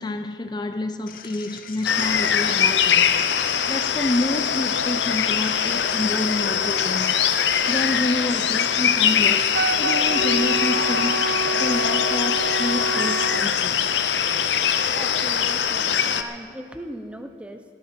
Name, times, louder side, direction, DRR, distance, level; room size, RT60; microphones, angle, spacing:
voice 1, 0.0-3.1 3.7-7.2 7.7-13.8, left 1 dB, 25° left, 0.5 m, -28 dB
sound 1, 1.1-8.1, left 7 dB, 50° left, 1.0 m, -42 dB
sound 2, 1.8-16.2, left 8 dB, 85° left, 0.7 m, -22 dB
Wind instrument woodwind instrument, 9.5-13.5, right 3 dB, 70° right, 0.5 m, -28 dB
voice 2, 14.9-17.6, equal, 5° right, 0.8 m, -38 dB
18.0 x 13.0 x 4.4 m
head